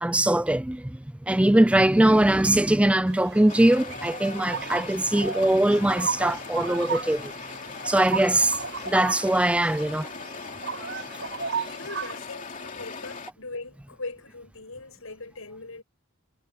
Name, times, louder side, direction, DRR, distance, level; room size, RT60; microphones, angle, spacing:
voice 1, 0.0-7.3 7.8-10.1, right 1 dB, 5° right, 0.3 m, -21 dB
sound 1, 3.1-12.2, right 6 dB, 55° right, 6.1 m, -35 dB
sound 2, 3.5-13.3, left 4 dB, 40° left, 2.7 m, -39 dB
voice 2, 11.6-15.8, left 3 dB, 80° left, 6.1 m, -40 dB
head